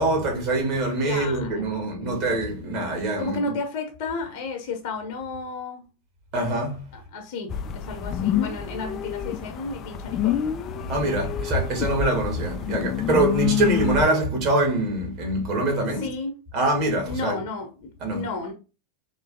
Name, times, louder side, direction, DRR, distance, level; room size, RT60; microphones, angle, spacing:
voice 1, 0.0-3.4 6.3-6.8 10.9-16.1 16.5-17.4 18.0-18.2, right 2 dB, 40° right, 2.1 m, -24 dB
voice 2, 1.0-2.7 3.2-5.9 6.9-10.4 11.0-11.1 16.0-16.3 17.0-18.5, left 3 dB, 45° left, 1.0 m, -33 dB
sound 1, 7.5-14.1, left 9 dB, 30° left, 0.5 m, -28 dB
3.9 x 3.0 x 4.0 m
figure-of-eight pair, 90°, 0 cm